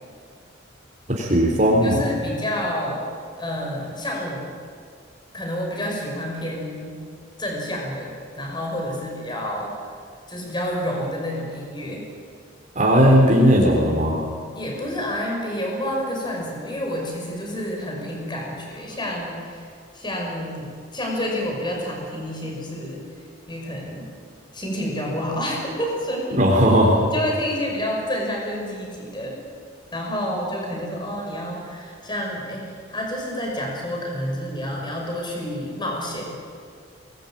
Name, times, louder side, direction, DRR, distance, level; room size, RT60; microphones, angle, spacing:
voice 1, 1.1-2.0 12.8-14.2 26.3-27.0, equal, 40° right, -2 dB, 3.6 m, -17 dB
voice 2, 1.8-4.5 5.3-7.0 7.4-9.8 10.3-12.0 13.6-13.8 14.5-23.0 23.5-24.1 24.5-26.5 27.1-29.4 29.9-36.4, equal, 25° left, 0 dB, 5.8 m, -29 dB
22.5 x 20.5 x 9.0 m, 2.2 s
head